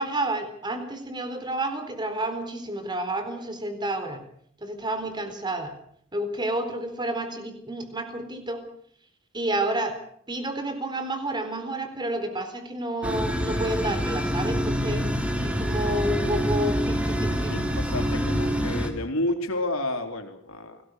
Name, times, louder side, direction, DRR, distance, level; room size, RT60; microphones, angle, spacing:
voice 1, 0.0-4.2 4.6-5.7 6.1-8.7 9.3-10.0 10.3-15.1 15.4-17.6, right 1 dB, 20° right, 7 dB, 4.0 m, -30 dB
sound 1, 13.0-18.9, equal, 5° right, 3.0 m, -26 dB
voice 2, 17.5-20.8, left 1 dB, 80° left, 5 dB, 3.9 m, -30 dB
29.0 x 19.5 x 6.6 m, 0.63 s
head